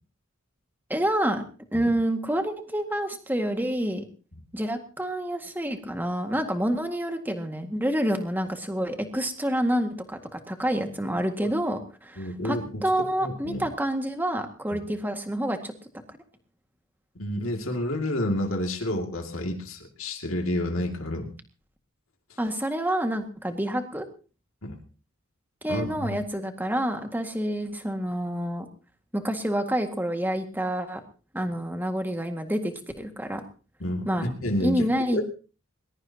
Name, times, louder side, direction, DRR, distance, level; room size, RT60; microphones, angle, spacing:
voice 1, 0.9-1.4 1.7-4.0 4.5-15.7 22.4-24.1 25.6-28.7 29.1-31.0 31.3-33.5 34.1-34.3 34.6-35.2, right 1 dB, 10° right, 5 dB, 1.9 m, -28 dB
voice 2, 12.2-12.8 13.2-13.6 14.7-14.8 17.2-21.3 22.3-22.4 24.6-24.7 25.7-26.2 33.8-35.2, left 1 dB, 75° left, 2 dB, 2.4 m, -30 dB
21.0 x 21.0 x 2.9 m, 0.37 s
head